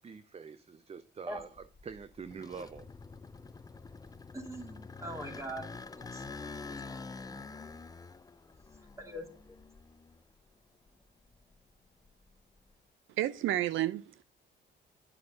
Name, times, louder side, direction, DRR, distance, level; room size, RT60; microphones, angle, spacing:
voice 1, 0.0-2.9, right 5 dB, 30° right, 0.6 m, -45 dB
sound 1, 1.4-10.4 10.9-12.7, left 4 dB, 20° left, 0.5 m, -47 dB
voice 2, 4.3-5.6 5.9-6.2 9.0-9.3, right 1 dB, 15° right, 2.8 m, -41 dB
voice 3, 13.2-14.2, right 13 dB, 80° right, 0.6 m, -31 dB
10.0 x 6.1 x 5.2 m
cardioid pair, 90°, 20 cm